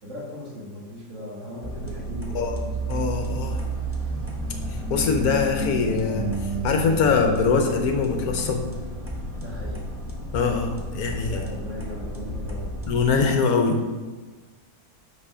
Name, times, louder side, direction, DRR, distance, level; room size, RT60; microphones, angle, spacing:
voice 1, 0.0-2.9 9.4-9.9 11.3-12.7, left 1 dB, 50° right, -5 dB, 2.0 m, -38 dB
sound 1, 1.6-13.2, right 2 dB, 10° right, 0.6 m, -31 dB
voice 2, 2.9-3.6 4.9-6.3 6.6-8.6 10.3-11.4 12.9-13.9, left 5 dB, 70° left, 4 dB, 1.1 m, -23 dB
5.8 x 4.7 x 4.9 m, 1.4 s
omnidirectional pair, 1.7 m